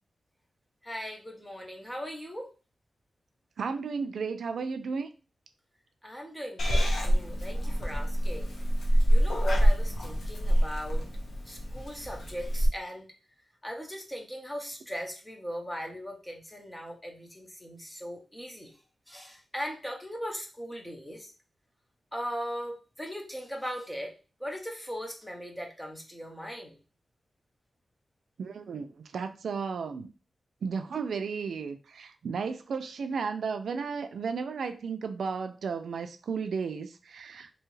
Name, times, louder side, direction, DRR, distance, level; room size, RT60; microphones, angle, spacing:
voice 1, 0.8-2.5 6.0-8.5 9.1-11.1 11.4-13.1 13.6-18.7 19.1-21.3 22.1-24.1 24.4-26.8, equal, 10° left, 1 dB, 0.6 m, -39 dB
voice 2, 3.6-5.1 28.4-30.1 30.6-37.5, right 5 dB, 80° right, 8 dB, 0.3 m, -34 dB
Purr / Meow, 6.6-12.7, equal, 80° left, 0.7 m, -26 dB
2.7 x 2.3 x 3.1 m, 0.33 s
wide cardioid pair, 160°, 0 cm